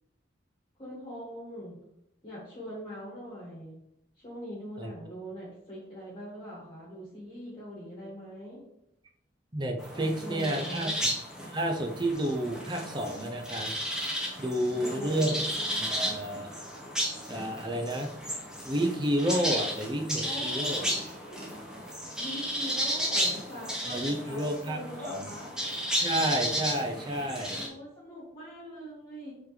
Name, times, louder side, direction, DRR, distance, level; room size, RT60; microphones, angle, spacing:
voice 1, 0.8-1.8 2.2-3.8 4.2-8.6 9.9-11.0 14.7-15.6 20.2-21.4 22.2-25.6 27.5-29.3, equal, 30° left, -7 dB, 1.6 m, -42 dB
voice 2, 9.5-11.0 11.5-13.7 14.4-15.4 15.8-16.5 17.3-18.1 18.6-20.9 23.9-25.3 26.0-27.6, right 1 dB, 25° right, 4 dB, 0.6 m, -30 dB
sound 1, 9.8-27.7, equal, 5° right, 1.1 m, -33 dB
7.5 x 3.9 x 3.2 m, 0.81 s
head